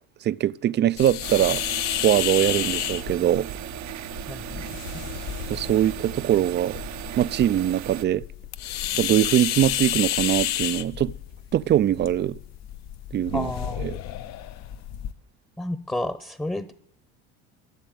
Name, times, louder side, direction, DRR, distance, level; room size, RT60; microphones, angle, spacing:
voice 1, 0.2-1.6 2.0-3.5 5.5-6.8 7.1-8.2 9.0-11.1 11.5-12.4 13.1-13.5 13.8-14.0, right 11 dB, 35° right, 0.5 m, -22 dB
sound 1, 1.0-15.1, left 12 dB, 55° left, 0.9 m, -31 dB
sound 2, 1.2-8.0, right 13 dB, 60° right, 0.8 m, -37 dB
voice 2, 4.3-4.6 13.3-13.8 15.6-16.7, left 1 dB, 5° left, 0.9 m, -31 dB
13.0 x 7.5 x 9.2 m
hypercardioid pair, 75°, 32 cm